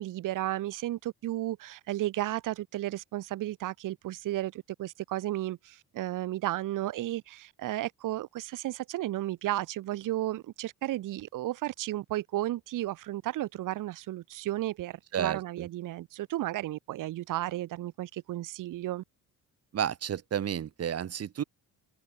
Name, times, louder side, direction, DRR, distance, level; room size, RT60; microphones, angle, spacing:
voice 1, 0.0-19.0, right 15 dB, 60° right, 0.7 m, -33 dB
voice 2, 15.1-15.7 19.7-21.4, right 9 dB, 45° right, 1.2 m, -31 dB
open air
cardioid pair, 110°, 35 cm